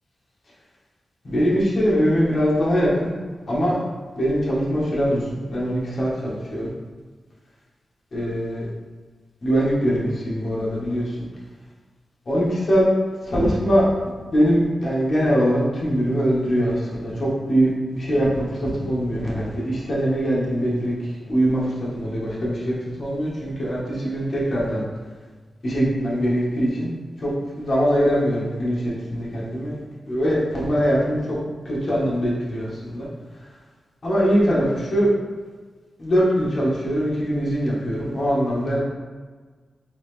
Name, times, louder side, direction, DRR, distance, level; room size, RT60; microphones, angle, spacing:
voice 1, 1.2-3.1 3.5-3.8 4.2-6.7 8.1-8.6 9.4-11.3 12.3-12.9 13.3-13.9 14.3-20.9 21.3-24.8 25.6-26.9 27.2-29.8 30.1-31.4 31.6-33.1 34.0-35.1 36.0-38.8, equal, 50° left, -6 dB, 1.2 m, -22 dB
3.9 x 2.9 x 3.2 m, 1.4 s
wide cardioid pair, 135°, 0 cm